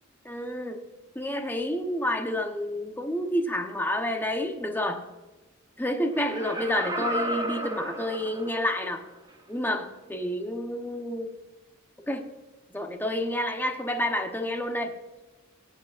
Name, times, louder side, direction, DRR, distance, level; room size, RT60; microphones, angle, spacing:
voice 1, 0.2-0.8 1.1-5.0 5.8-9.0 9.5-11.3 12.1-12.3 12.7-14.9, left 1 dB, 10° left, 4 dB, 1.0 m, -29 dB
Laughter, 6.2-8.8 9.3-9.4, right 1 dB, 20° right, 1.1 m, -33 dB
17.0 x 8.8 x 2.5 m, 1.1 s
head